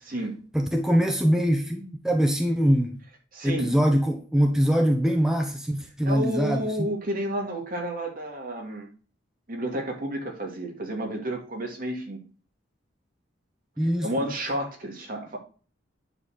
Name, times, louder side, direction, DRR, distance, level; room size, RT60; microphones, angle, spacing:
voice 1, 0.0-0.4 3.3-3.7 6.0-8.9 9.5-12.2 13.8-15.4, right 1 dB, 50° right, 2.6 m, -31 dB
voice 2, 0.5-3.0 3.4-6.9 13.8-14.1, equal, 5° right, 0.8 m, -23 dB
9.8 x 4.1 x 6.5 m
head